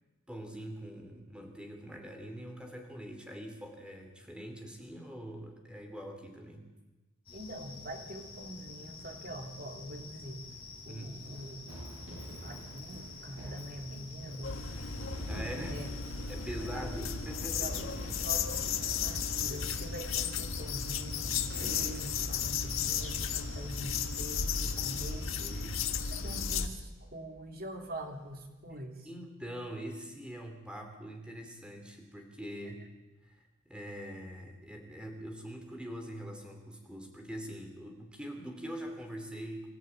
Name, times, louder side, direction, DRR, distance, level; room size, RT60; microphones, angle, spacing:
voice 1, 0.3-6.7 10.8-11.2 15.3-16.0 16.3-17.9 25.4-25.8 29.0-32.8 33.2-39.7, equal, 5° right, 4 dB, 3.0 m, -43 dB
sound 1, 7.3-26.5, left 3 dB, 25° left, 6.6 m, -48 dB
voice 2, 7.3-10.6 10.8-11.6 12.4-14.9 15.2-15.3 15.7-15.9 16.4-17.2 17.5-25.4 26.1-29.1, right 1 dB, 45° right, 3 dB, 3.0 m, -44 dB
Run, 10.4-28.8, right 1 dB, 70° right, 5.0 m, -50 dB
sound 2, 14.4-26.7, left 6 dB, 65° left, 1.6 m, -34 dB
25.5 x 13.5 x 9.1 m, 1.1 s
head